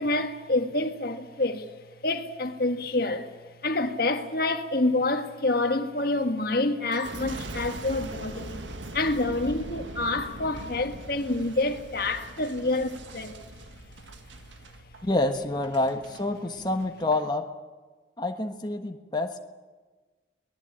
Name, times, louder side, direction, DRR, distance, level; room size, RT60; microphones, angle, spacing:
voice 1, 0.0-1.7 2.0-3.3 3.6-8.6 8.9-13.4, left 2 dB, 55° left, 1.7 m, -27 dB
Boom, 6.9-16.3 16.8-17.3, right 2 dB, 90° right, 1.7 m, -41 dB
voice 2, 15.0-17.5 18.2-19.3, left 2 dB, 25° left, 1.3 m, -27 dB
23.5 x 19.0 x 8.8 m
head